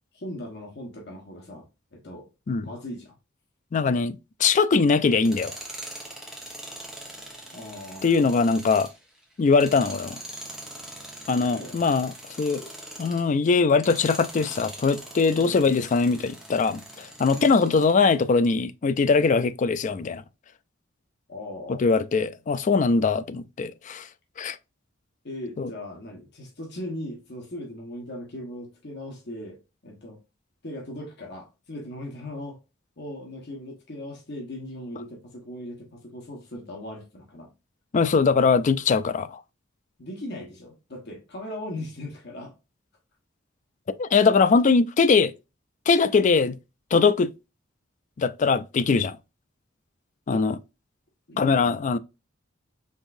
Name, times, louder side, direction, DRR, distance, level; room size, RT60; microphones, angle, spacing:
voice 1, 0.1-1.6 1.9-2.3 2.6-3.1 7.5-8.3 11.5-11.9 15.3-15.7 17.3-17.5 21.3-21.8 25.2-29.6 29.8-30.2 30.6-32.6 33.0-37.5 40.0-42.5 50.3-50.4 51.3-52.0, left 1 dB, 60° left, 1.2 m, -38 dB
voice 2, 3.7-5.6 8.0-8.9 9.4-10.2 11.3-12.1 12.4-12.7 13.0-20.2 21.7-24.1 24.4-24.6 25.6-25.7 37.9-39.4 44.0-45.3 45.9-46.6 46.9-47.3 48.2-49.2 50.3-50.6 51.4-52.0, left 4 dB, 40° left, 0.3 m, -21 dB
Tools, 5.1-13.3 13.7-18.0, right 1 dB, 5° right, 1.2 m, -42 dB
5.3 x 3.5 x 2.6 m
head